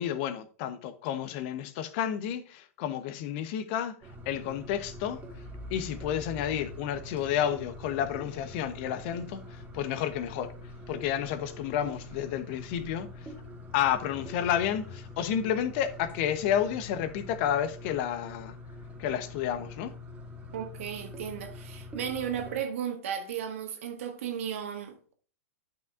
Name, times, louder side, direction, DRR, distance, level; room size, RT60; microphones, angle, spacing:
voice 1, 0.0-3.9 4.3-5.2 5.7-10.5 10.9-13.1 13.7-18.5 19.0-19.9, left 10 dB, 45° left, 0.9 m, -31 dB
sound 1, 4.0-22.6, left 1 dB, 15° right, 1.9 m, -44 dB
voice 2, 20.5-25.1, right 8 dB, 60° right, 1.6 m, -35 dB
11.5 x 5.8 x 2.5 m
figure-of-eight pair, 100°, 8 cm